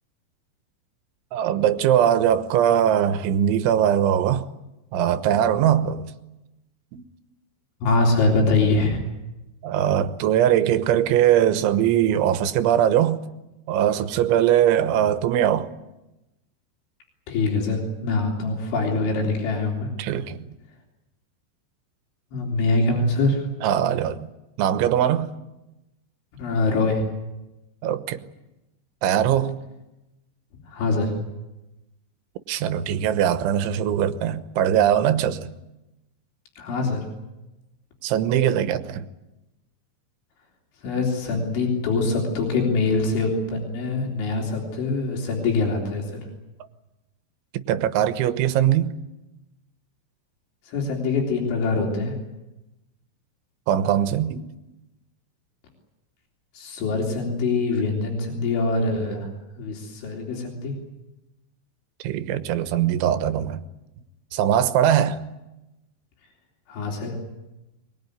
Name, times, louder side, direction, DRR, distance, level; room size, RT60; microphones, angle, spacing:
voice 1, 1.3-4.4 4.9-6.0 6.9-7.0 9.6-13.2 13.7-15.7 20.0-20.4 23.6-24.2 24.6-25.3 27.8-28.2 29.0-29.6 32.5-35.5 38.0-39.1 47.7-48.9 53.7-54.5 62.0-63.6 64.3-65.2, right 10 dB, 90° right, 3.5 m, -21 dB
voice 2, 7.8-9.0 17.3-19.9 22.3-23.4 26.4-27.0 30.7-31.1 36.6-37.0 40.8-46.2 50.7-52.2 56.5-59.3 59.6-60.7 66.7-67.1, left 3 dB, 85° left, 6.0 m, -24 dB
23.0 x 21.5 x 9.4 m
omnidirectional pair, 5.2 m